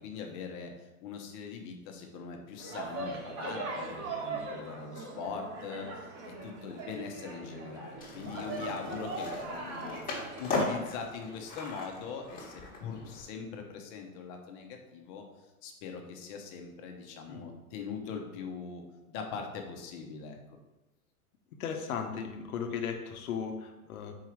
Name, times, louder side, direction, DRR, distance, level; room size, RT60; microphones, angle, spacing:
voice 1, 0.0-10.0 10.4-15.2 15.6-18.8 19.1-20.6, left 5 dB, 40° left, 3 dB, 1.1 m, -42 dB
sound 1, 2.6-10.7, right 3 dB, 40° right, 1.5 m, -40 dB
Skateboard, 8.0-13.2, left 2 dB, 20° left, 1.5 m, -37 dB
voice 2, 21.6-24.2, left 6 dB, 70° left, 4 dB, 1.0 m, -36 dB
4.8 x 4.6 x 4.6 m, 1.1 s
hypercardioid pair, 120°, 44 cm